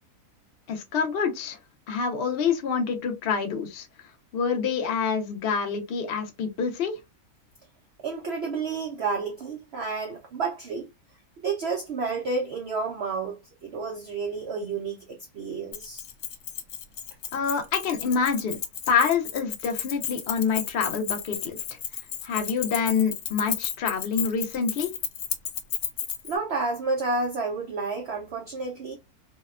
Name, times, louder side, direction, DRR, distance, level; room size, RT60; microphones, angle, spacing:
voice 1, 0.7-1.6 1.9-3.9 4.3-7.0 17.3-18.6 18.9-21.8 22.2-24.9, left 6 dB, 65° left, 0.6 m, -26 dB
voice 2, 8.0-10.9 11.4-16.0 26.2-28.9, right 4 dB, 70° right, 0.6 m, -30 dB
Keys jangling, 15.7-26.3, left 9 dB, 85° left, 1.1 m, -33 dB
2.7 x 2.1 x 2.3 m
omnidirectional pair, 1.6 m